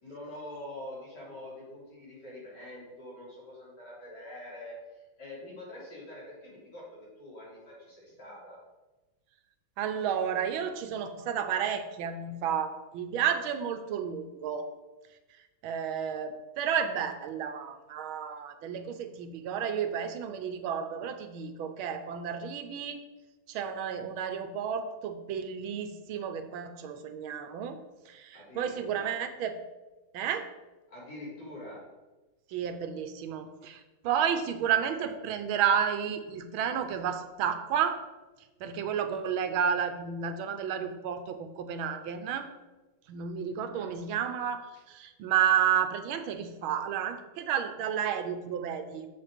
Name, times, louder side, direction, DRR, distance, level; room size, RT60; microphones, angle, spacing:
voice 1, 0.0-8.6 28.3-29.1 30.9-31.8 43.7-43.9, left 1 dB, 55° left, -6 dB, 4.1 m, -45 dB
voice 2, 9.8-14.7 15.1-23.0 23.5-27.8 28.0-29.6 30.1-30.5 32.5-38.0 38.4-42.5 43.1-49.1, right 8 dB, 85° right, 8 dB, 1.6 m, -31 dB
7.4 x 6.5 x 5.2 m, 1.1 s
omnidirectional pair, 2.2 m